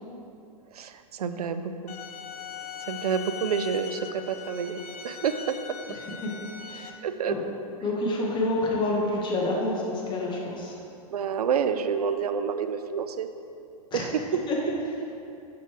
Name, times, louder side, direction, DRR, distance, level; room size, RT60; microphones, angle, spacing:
voice 1, 0.7-1.9 2.8-5.8 7.0-7.4 11.1-13.3 13.9-14.2, right 7 dB, 85° right, 10 dB, 0.5 m, -29 dB
sound 1, 1.9-6.9, left 7 dB, 85° left, 0.5 m, -40 dB
voice 2, 7.8-10.8 13.9-14.0 14.5-14.7, left 2 dB, 25° left, -3 dB, 1.3 m, -28 dB
6.8 x 6.3 x 3.2 m, 2.6 s
hypercardioid pair, 125°, 19 cm